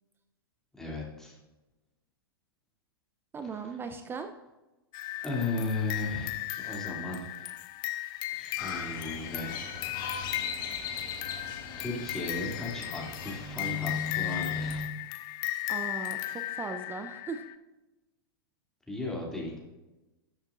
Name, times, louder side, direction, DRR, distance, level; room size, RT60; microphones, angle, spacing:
voice 1, 0.8-1.4 3.4-3.5 5.2-6.4 6.6-7.3 8.3-9.6 11.8-14.9 18.9-19.6, left 3 dB, 5° left, -3 dB, 2.5 m, -35 dB
voice 2, 3.3-4.3 15.7-17.5, right 5 dB, 15° right, 7 dB, 0.5 m, -38 dB
sound 1, 4.9-17.6, left 15 dB, 35° left, 0.4 m, -36 dB
Crow, 8.6-14.8, left 5 dB, 55° left, 1.6 m, -38 dB
13.0 x 7.2 x 2.5 m, 1.1 s
figure-of-eight pair, 100°, 13 cm